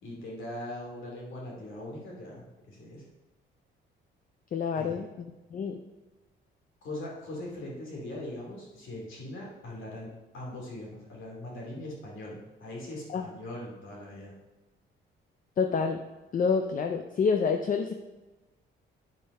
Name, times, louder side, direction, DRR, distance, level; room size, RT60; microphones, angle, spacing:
voice 1, 0.0-3.0 4.7-5.1 6.8-10.1 10.3-14.3, left 1 dB, 80° left, -2 dB, 2.8 m, -41 dB
voice 2, 4.5-5.1 5.5-5.8 13.1-13.3 15.6-16.0 16.3-17.9, left 5 dB, 45° left, 6 dB, 0.6 m, -27 dB
9.5 x 4.6 x 5.4 m, 1.1 s
cardioid pair, 90°, 20 cm